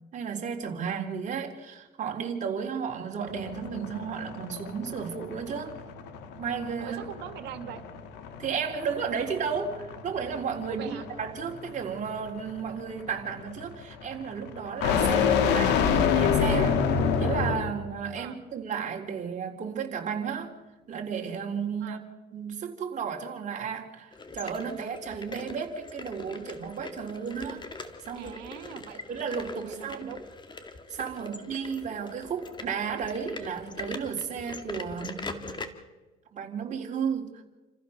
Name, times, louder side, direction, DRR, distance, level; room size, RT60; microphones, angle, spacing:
voice 1, 0.1-5.8 6.4-7.1 8.4-16.9 17.2-20.5 20.9-22.0 22.3-27.6 28.0-28.3 29.1-30.1 30.9-35.8 36.3-37.4, right 6 dB, 45° right, 1 dB, 3.8 m, -33 dB
sound 1, 3.2-17.8, left 7 dB, 90° left, 2.2 m, -28 dB
voice 2, 6.8-7.8 10.6-11.1 18.2-18.4 21.8-22.0 28.1-29.0 29.6-30.2 31.2-31.4, right 11 dB, 90° right, 8 dB, 2.3 m, -41 dB
sound 2, 24.1-35.7, left 3 dB, 25° left, 2.0 m, -42 dB
29.0 x 15.0 x 6.6 m, 1.2 s
cardioid pair, 110°, 17 cm